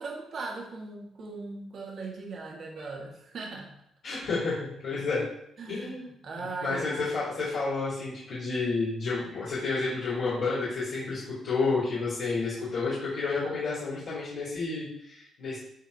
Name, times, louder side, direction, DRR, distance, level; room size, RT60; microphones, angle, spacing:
voice 1, 0.0-3.7 5.6-5.9 6.2-7.1, right 3 dB, 60° right, -2 dB, 1.5 m, -39 dB
voice 2, 4.0-5.3 5.7-6.0 6.3-15.6, left 3 dB, 70° left, -10 dB, 2.7 m, -30 dB
9.9 x 4.2 x 2.7 m, 0.74 s
cardioid pair, 90°, 0 cm